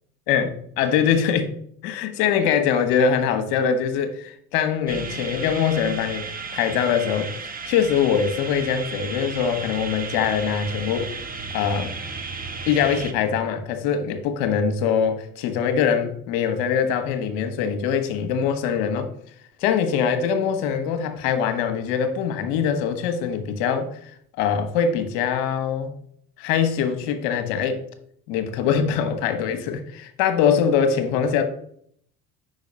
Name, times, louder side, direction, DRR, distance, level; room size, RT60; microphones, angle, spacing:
voice 1, 0.3-1.5 1.8-6.3 6.5-11.1 11.5-11.9 12.7-19.1 19.6-24.0 24.4-25.9 26.4-27.8 28.3-31.4, left 7 dB, 70° left, 7 dB, 1.1 m, -23 dB
sound 1, 4.9-13.1, right 4 dB, 20° right, 0.8 m, -34 dB
5.5 x 4.1 x 5.3 m, 0.66 s
hypercardioid pair, 70°, 47 cm